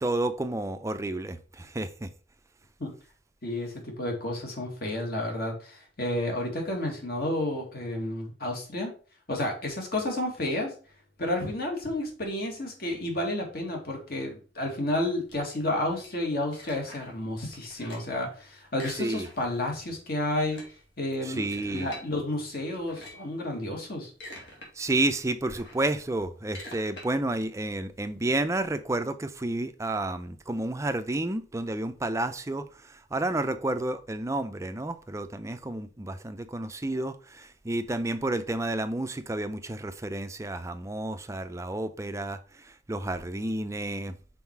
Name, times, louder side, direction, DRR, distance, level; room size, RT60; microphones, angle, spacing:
voice 1, 0.0-2.1 19.0-19.3 21.2-21.9 24.8-44.2, right 2 dB, 15° right, 0.5 m, -31 dB
voice 2, 3.4-8.9 9.3-10.7 11.2-20.6 21.0-24.1, left 1 dB, 55° left, 2.0 m, -31 dB
sound 1, 15.3-17.2 17.5-18.2 18.7-19.6 19.9-20.0 20.3-22.1 22.7-23.3 23.9-24.7 25.1-28.4, left 1 dB, 75° left, 2.3 m, -47 dB
5.6 x 4.3 x 4.6 m
head